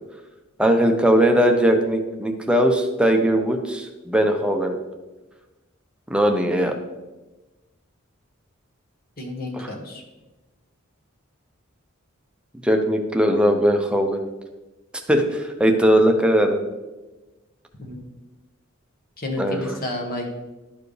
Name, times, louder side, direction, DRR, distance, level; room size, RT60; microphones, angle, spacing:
voice 1, 0.6-4.8 6.1-6.7 9.5-9.7 12.6-14.2 15.1-16.6 19.4-19.6, equal, 5° right, 4 dB, 0.7 m, -19 dB
voice 2, 9.2-10.0 17.8-18.0 19.2-20.3, left 2 dB, 45° left, 1 dB, 1.4 m, -31 dB
12.0 x 4.7 x 3.3 m, 1.1 s
head